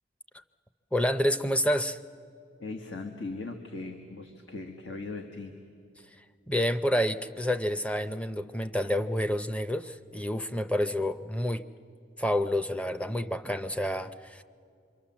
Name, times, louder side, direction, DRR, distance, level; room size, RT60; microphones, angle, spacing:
voice 1, 0.9-2.0 6.5-11.6 12.2-14.4, equal, 5° left, 10 dB, 0.5 m, -28 dB
voice 2, 2.6-5.6, left 3 dB, 80° left, 4 dB, 1.5 m, -39 dB
26.5 x 24.0 x 7.3 m, 2.3 s
head